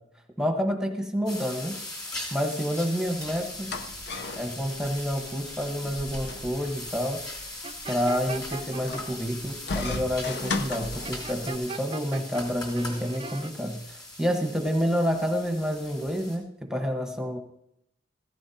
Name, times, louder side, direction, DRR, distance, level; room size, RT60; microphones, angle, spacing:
voice 1, 0.4-1.8 2.3-3.8 4.3-7.2 7.9-17.4, equal, 5° right, 3 dB, 1.1 m, -29 dB
sound 1, 1.3-16.4, left 1 dB, 20° left, 3.0 m, -40 dB
sound 2, 3.3-11.6, left 3 dB, 60° left, 0.8 m, -37 dB
sound 3, 7.6-9.0 11.0-12.5 12.7-13.5, right 4 dB, 30° right, 0.5 m, -39 dB
15.5 x 15.0 x 2.8 m, 0.76 s
head